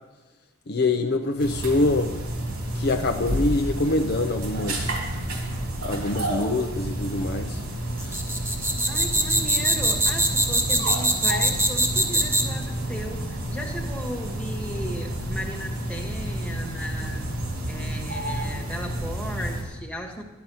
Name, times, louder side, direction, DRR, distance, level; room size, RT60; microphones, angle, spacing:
voice 1, 0.7-2.1 2.8-5.0 5.8-7.6 8.0-8.2, left 2 dB, 45° left, 4 dB, 0.6 m, -25 dB
sound 1, 1.4-19.6, right 1 dB, 80° right, 3.2 m, -30 dB
sound 2, 8.0-12.6, right 1 dB, 10° right, 1.1 m, -22 dB
voice 2, 8.9-17.3 17.7-20.2, equal, 5° left, 0 dB, 1.5 m, -36 dB
12.5 x 10.5 x 5.5 m, 1.2 s
head